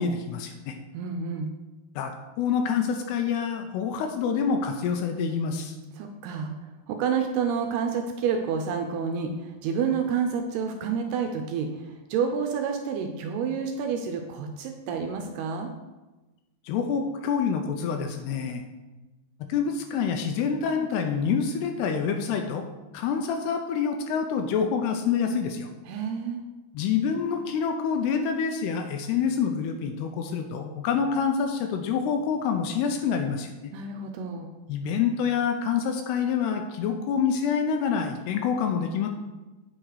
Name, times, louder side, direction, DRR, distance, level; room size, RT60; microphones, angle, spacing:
voice 1, 0.0-0.8 2.0-2.1 2.4-5.8 16.7-18.6 19.5-22.6 22.9-25.7 26.7-33.7 34.7-39.1, left 6 dB, 80° left, 5 dB, 2.5 m, -27 dB
voice 2, 0.9-1.5 6.0-6.5 6.9-15.7 25.9-26.4 33.7-34.5, right 6 dB, 80° right, 5 dB, 2.5 m, -29 dB
8.7 x 6.5 x 4.7 m, 1.1 s
omnidirectional pair, 5.1 m